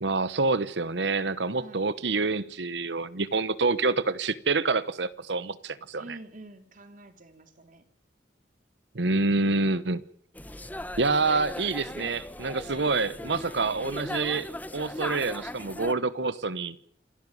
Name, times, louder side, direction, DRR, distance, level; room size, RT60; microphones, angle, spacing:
voice 1, 0.0-6.2 8.9-10.0 11.0-16.8, right 3 dB, 75° right, 1.1 m, -27 dB
voice 2, 5.9-7.8, right 2 dB, 50° right, 2.8 m, -47 dB
sound 1, 10.3-15.9, left 1 dB, 10° left, 0.9 m, -38 dB
28.0 x 12.5 x 9.6 m
head